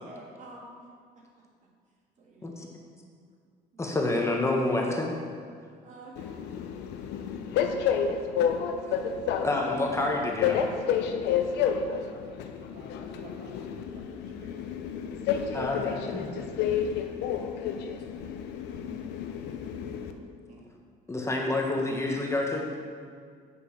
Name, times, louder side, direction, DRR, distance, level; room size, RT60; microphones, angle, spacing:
voice 1, 0.0-0.3 3.8-4.0 11.1-11.5 12.1-14.9 16.6-16.8, right 2 dB, 65° right, -1 dB, 1.6 m, -52 dB
voice 2, 2.2-3.3 5.8-6.8 11.7-11.8 16.6-17.0 18.0-18.4 18.7-18.9 20.5-20.7, right 3 dB, 45° right, -2 dB, 2.0 m, -52 dB
voice 3, 3.8-5.2 8.9-9.0 9.4-10.6 15.5-16.3 21.1-22.7, left 2 dB, 15° left, 0 dB, 1.0 m, -28 dB
Train, 6.2-20.1, left 7 dB, 85° left, 0.6 m, -30 dB
8.4 x 5.3 x 5.8 m, 2.1 s
cardioid pair, 110°, 17 cm